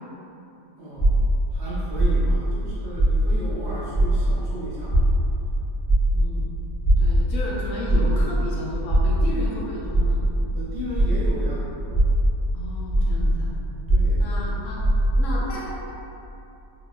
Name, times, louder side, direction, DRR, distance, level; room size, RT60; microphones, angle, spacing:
voice 1, 0.8-1.2 1.5-5.1 10.5-11.7 13.9-14.3, equal, 55° right, -8 dB, 0.9 m, -34 dB
sound 1, 1.0-3.6 3.9-11.5 11.8-15.4, right 1 dB, 15° left, 1.0 m, -21 dB
voice 2, 6.1-6.5 7.0-10.2 12.5-13.5 14.2-14.9 15.2-15.7, left 1 dB, 70° left, -5 dB, 0.9 m, -33 dB
3.7 x 2.9 x 2.3 m, 2.8 s
omnidirectional pair, 1.5 m